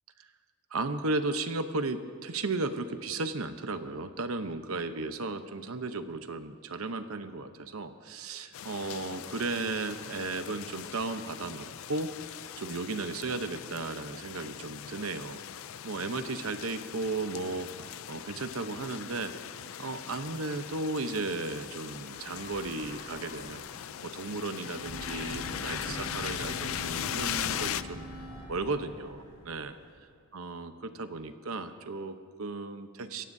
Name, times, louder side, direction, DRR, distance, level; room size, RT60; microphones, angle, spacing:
voice 1, 0.7-12.1 12.6-15.4 15.8-17.7 18.1-19.3 19.8-23.6 24.0-28.1 28.5-29.7 30.3-33.2, right 3 dB, 85° right, 9 dB, 0.9 m, -35 dB
sound 1, 8.5-27.8, left 10 dB, 75° left, 0.4 m, -40 dB
Breathing / Wind, 21.9-23.8 24.7-30.1, equal, 35° left, 4.1 m, -46 dB
sound 2, 24.7-29.7, equal, 30° right, 2.0 m, -48 dB
25.5 x 16.0 x 2.7 m, 2.1 s
head